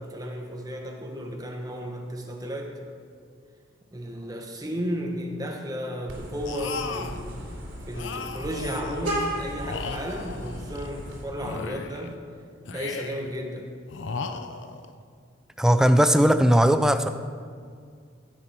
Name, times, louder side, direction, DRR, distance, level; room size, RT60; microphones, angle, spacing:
voice 1, 0.0-2.7 3.9-7.4 7.9-12.2 12.7-13.7, equal, 20° right, 2 dB, 1.2 m, -33 dB
Vehicle horn car horn honking, 6.1-11.2, right 1 dB, 75° right, 3.0 m, -35 dB
sound 1, 6.4-7.2 7.9-9.1 9.6-10.9 11.4-12.1 12.6-13.3 13.9-14.9, left 5 dB, 75° left, 0.6 m, -36 dB
voice 2, 15.6-17.1, equal, 5° right, 10 dB, 0.4 m, -18 dB
15.0 x 7.3 x 4.5 m, 2.1 s
head